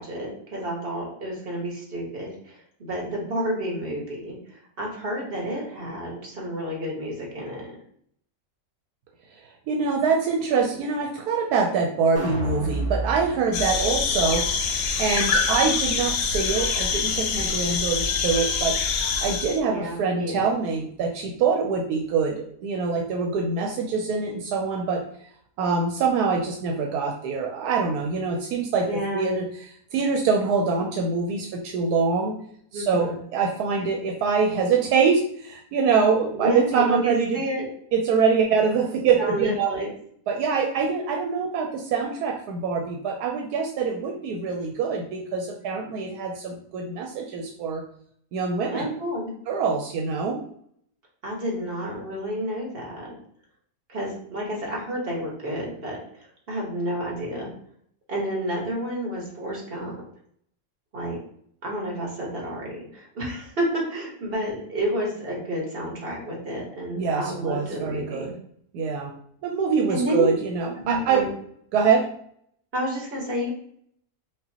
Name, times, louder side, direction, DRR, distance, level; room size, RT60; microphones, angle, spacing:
voice 1, 0.0-7.7 19.7-20.5 28.8-29.3 32.7-33.2 36.3-37.7 39.2-39.9 48.7-49.3 51.2-53.2 53.9-57.5 58.1-60.0 60.9-61.2 61.6-68.3 69.9-70.3 70.8-71.3 72.7-73.5, equal, 40° right, -2 dB, 1.3 m, -30 dB
voice 2, 9.7-14.5 15.0-18.8 19.2-25.0 25.6-28.9 29.1-29.5 29.9-32.4 32.7-37.4 37.9-39.7 40.3-47.8 48.3-48.9 49.5-50.4 67.0-68.3 68.7-69.1 69.4-71.3 71.7-72.1, right 5 dB, 80° right, 1 dB, 1.1 m, -24 dB
sound 1, 12.1-18.4 18.8-18.9, right 1 dB, 5° left, 1.1 m, -35 dB
sound 2, 13.5-19.6, left 5 dB, 70° left, 0.9 m, -25 dB
5.3 x 2.4 x 2.8 m, 0.64 s
omnidirectional pair, 1.6 m